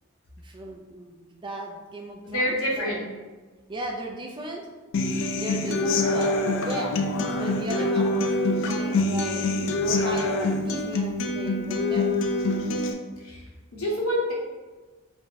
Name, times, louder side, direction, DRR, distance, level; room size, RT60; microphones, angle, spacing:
voice 1, 0.4-2.9 3.7-4.6 5.3-8.3 8.6-9.5 9.8-12.1, right 1 dB, 20° right, 1 dB, 0.3 m, -36 dB
voice 2, 2.2-3.0 13.2-13.4 13.7-14.3, equal, 75° left, -3 dB, 0.9 m, -27 dB
Human voice / Acoustic guitar, 4.9-12.9, left 2 dB, 60° left, 0.3 m, -25 dB
3.4 x 2.1 x 4.0 m, 1.3 s
head